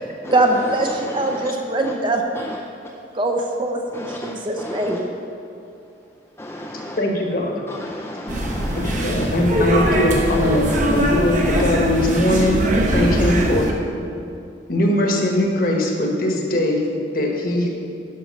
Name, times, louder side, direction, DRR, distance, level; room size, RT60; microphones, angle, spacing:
voice 1, 0.3-2.2 3.1-5.1, right 2 dB, 25° right, 3 dB, 0.7 m, -22 dB
voice 2, 1.1-1.5 1.8-1.9 2.4-2.6 3.9-5.0 6.4-7.0 7.7-9.0 10.3-10.8, left 1 dB, 15° left, 0 dB, 0.5 m, -34 dB
voice 3, 7.0-7.5 8.7-13.7 14.7-16.8 17.1-17.7, left 1 dB, 50° left, 1 dB, 1.3 m, -20 dB
sound 1, 8.3-13.7, right 1 dB, 45° right, 1.0 m, -21 dB
11.0 x 6.2 x 5.3 m, 2.5 s
head